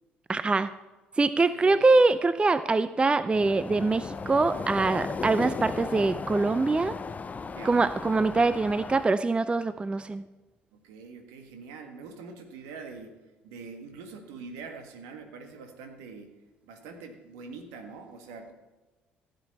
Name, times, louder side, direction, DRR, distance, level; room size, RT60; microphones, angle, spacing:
voice 1, 0.3-0.7 1.2-7.0 7.6-10.2, right 3 dB, 20° right, 14 dB, 0.4 m, -24 dB
voice 2, 1.5-1.8 7.5-7.8 10.7-13.1 13.4-16.3 16.6-18.5, right 4 dB, 65° right, 5 dB, 1.7 m, -44 dB
sound 1, 3.3-9.1, left 4 dB, 25° left, 0.7 m, -36 dB
15.5 x 8.4 x 4.1 m, 1.2 s
figure-of-eight pair, 50°, 6 cm